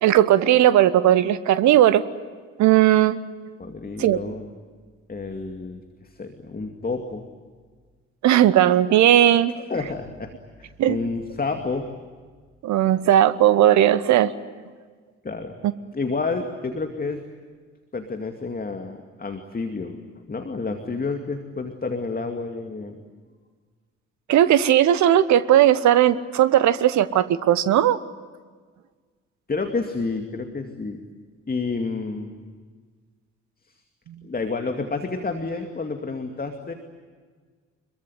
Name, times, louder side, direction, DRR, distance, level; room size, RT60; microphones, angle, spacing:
voice 1, 0.0-2.0 2.6-3.2 4.0-4.2 8.2-9.5 10.8-11.0 12.6-14.3 24.3-28.0, right 12 dB, 50° right, 16 dB, 1.1 m, -17 dB
voice 2, 3.6-4.5 5.1-7.2 9.5-10.3 10.6-11.9 15.2-15.6 15.9-17.2 17.9-20.0 20.3-23.0 29.5-31.0 31.5-32.3 33.7-33.8 34.2-36.7, left 3 dB, 25° left, 5 dB, 2.4 m, -29 dB
26.0 x 22.5 x 9.3 m, 1.5 s
figure-of-eight pair, 40°, 35 cm